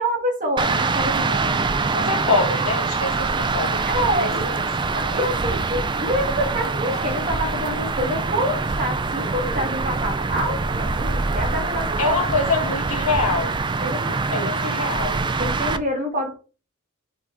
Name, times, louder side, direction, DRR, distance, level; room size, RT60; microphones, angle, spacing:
voice 1, 0.0-1.7 3.9-4.4 4.8-12.2 13.8-14.5 15.4-16.3, equal, 35° right, 1.8 m, -27 dB
sound 1, 0.6-15.8, right 4 dB, 20° right, 0.4 m, -24 dB
voice 2, 1.8-4.6 6.9-7.0 12.0-13.6 14.3-15.3, left 3 dB, 80° left, 1.4 m, -25 dB
4.6 x 4.3 x 4.7 m
head